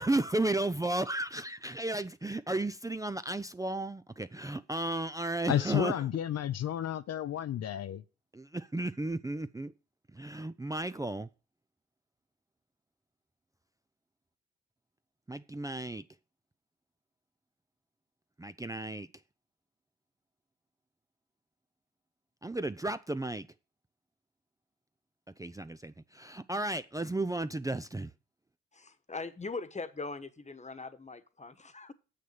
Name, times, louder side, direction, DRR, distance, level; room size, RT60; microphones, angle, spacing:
voice 1, 0.0-5.9 8.3-9.7 10.1-11.3 15.3-16.0 18.4-19.1 22.4-23.5 25.4-28.1, right 2 dB, 10° right, 0.6 m, -34 dB
voice 2, 5.5-8.0, left 11 dB, 55° left, 0.7 m, -31 dB
voice 3, 28.7-31.9, left 3 dB, 25° left, 1.3 m, -41 dB
7.7 x 6.6 x 6.8 m
hypercardioid pair, 50°, 30 cm